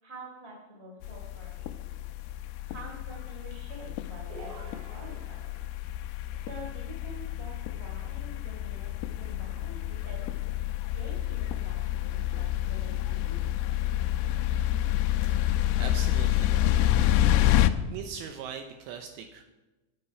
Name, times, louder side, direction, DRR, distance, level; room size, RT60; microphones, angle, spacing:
voice 1, 0.0-1.8 2.7-5.5 6.3-10.6 10.9-13.5, right 1 dB, 15° right, -1 dB, 2.9 m, -47 dB
sound 1, 1.0-17.7, left 13 dB, 90° left, 2.3 m, -28 dB
sound 2, 4.3-5.8, right 1 dB, 40° right, 4.1 m, -47 dB
voice 2, 15.3-16.7 17.9-19.4, right 7 dB, 80° right, 5 dB, 2.9 m, -41 dB
21.0 x 7.5 x 5.7 m, 1.1 s
omnidirectional pair, 5.5 m